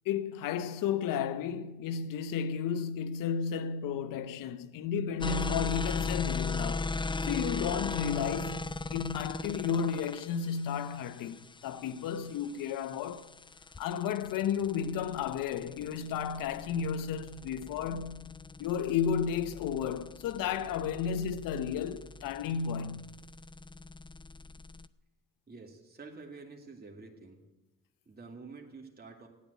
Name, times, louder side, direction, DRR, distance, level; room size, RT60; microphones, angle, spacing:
voice 1, 0.1-6.9 7.2-13.3 13.8-18.2 18.6-23.1, left 7 dB, 80° left, 0.9 m, -33 dB
sound 1, 5.2-24.9, left 3 dB, 15° left, 0.5 m, -38 dB
voice 2, 25.5-27.4 28.1-29.3, right 4 dB, 30° right, 2.5 m, -48 dB
13.5 x 9.9 x 8.2 m
supercardioid pair, 55°, 33 cm